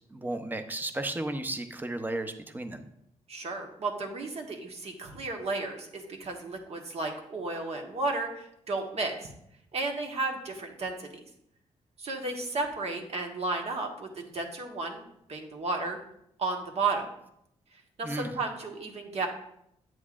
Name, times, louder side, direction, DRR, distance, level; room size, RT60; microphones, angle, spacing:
voice 1, 0.1-2.8 18.0-18.3, right 1 dB, 15° right, 7 dB, 0.7 m, -34 dB
voice 2, 3.3-9.3 9.7-11.1 12.0-15.0 15.3-16.0 16.4-17.0 18.0-19.3, right 3 dB, 55° right, 2 dB, 1.3 m, -33 dB
8.4 x 7.7 x 2.5 m, 0.75 s
cardioid pair, 90°, 12 cm